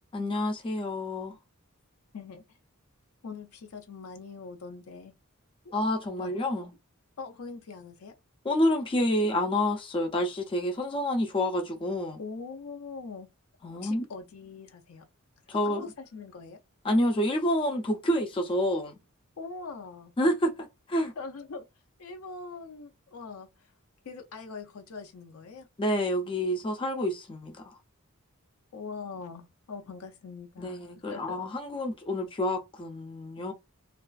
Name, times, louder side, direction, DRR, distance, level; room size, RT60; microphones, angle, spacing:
voice 1, 0.1-1.4 5.7-6.7 8.4-12.2 13.6-14.0 15.5-15.9 16.8-18.9 20.2-21.1 25.8-27.8 30.6-33.5, left 1 dB, 25° left, 0.4 m, -28 dB
voice 2, 3.2-5.2 5.6-5.8 6.2-6.3 7.2-8.1 12.2-13.3 13.8-15.1 15.5-16.6 19.4-20.1 21.2-21.6 22.0-23.5 24.0-25.7 28.7-31.4, left 4 dB, 75° left, 0.5 m, -42 dB
2.4 x 2.3 x 2.3 m
head